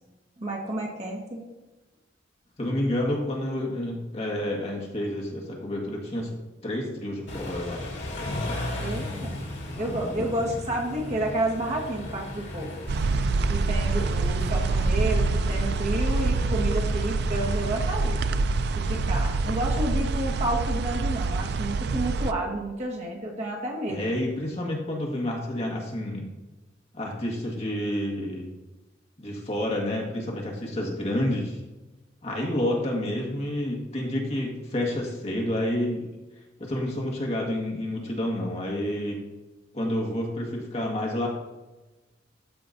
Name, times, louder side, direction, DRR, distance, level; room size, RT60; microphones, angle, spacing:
voice 1, 0.4-1.4 8.8-9.3 9.8-12.7 13.5-18.2 18.8-24.1, right 1 dB, 35° right, -1 dB, 1.3 m, -30 dB
voice 2, 2.6-7.9 8.2-8.6 9.7-10.2 23.9-26.3 26.9-28.5 29.2-31.6 32.2-36.0 36.6-39.2 39.7-41.3, left 1 dB, 35° left, -1 dB, 1.7 m, -29 dB
Car / Idling / Accelerating revving vroom, 7.3-19.6, left 1 dB, 65° left, 2.4 m, -37 dB
sound 1, 12.9-22.3, right 3 dB, 60° right, 0.4 m, -26 dB
13.0 x 5.1 x 2.7 m, 1.1 s
head